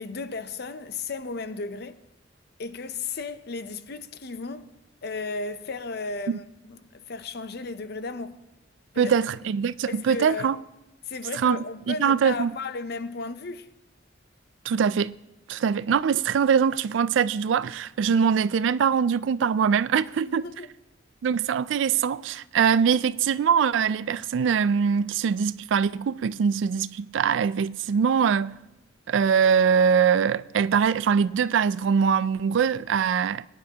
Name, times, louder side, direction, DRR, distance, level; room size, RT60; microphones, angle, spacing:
voice 1, 0.0-2.0 2.6-4.7 5.0-8.4 8.9-9.1 9.9-10.5 11.1-13.7 20.2-20.7, left 3 dB, 55° left, 0.6 m, -34 dB
voice 2, 9.0-10.6 11.4-12.5 14.7-15.1 15.5-20.5 21.2-28.6 29.1-33.4, right 7 dB, 70° right, 0.3 m, -23 dB
22.0 x 10.0 x 2.9 m
head